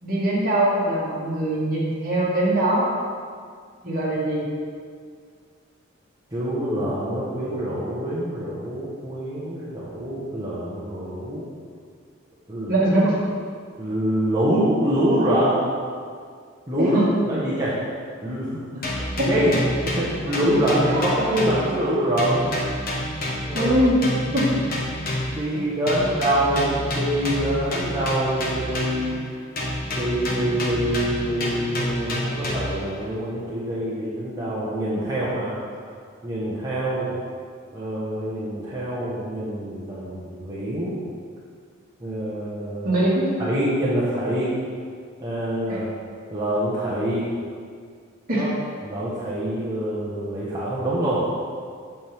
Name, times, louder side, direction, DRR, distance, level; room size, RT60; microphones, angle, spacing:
voice 1, 0.0-2.9 3.8-4.5 12.7-13.2 16.8-17.1 17.4-17.5 19.0-19.3 20.9-21.0 23.5-24.0 24.3-24.5 25.5-25.7 42.8-43.3 45.7-45.8 48.3-48.5, right 1 dB, 45° right, -7 dB, 2.1 m, -22 dB
voice 2, 6.3-11.4 12.5-12.7 13.8-15.6 16.7-17.0 17.2-17.8 18.2-18.6 19.3-19.5 19.8-22.4 23.5-23.7 25.3-29.2 29.9-35.5 36.2-37.2 37.7-41.0 42.0-43.0 43.4-44.5 45.2-45.9 46.3-47.3 48.3-48.5 48.8-51.2, right 1 dB, 20° right, -10 dB, 1.2 m, -25 dB
sound 1, 18.8-21.9 22.2-25.5 25.9-29.2 29.6-32.9, left 1 dB, 45° left, 1.4 m, -28 dB
8.6 x 6.4 x 3.6 m, 2.1 s
head